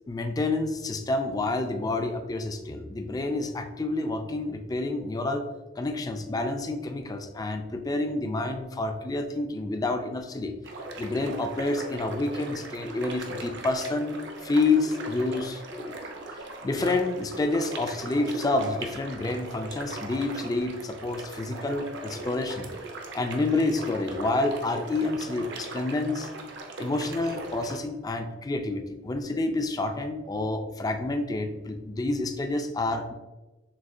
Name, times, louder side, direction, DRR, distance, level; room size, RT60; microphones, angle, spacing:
voice 1, 0.1-5.4 5.8-10.5 11.0-16.0 16.6-22.7 23.1-26.3 26.8-33.1, left 2 dB, 20° left, 7 dB, 0.3 m, -28 dB
sound 1, 10.6-27.8, right 2 dB, 65° right, 0.6 m, -39 dB
6.2 x 2.4 x 2.5 m, 1.1 s
head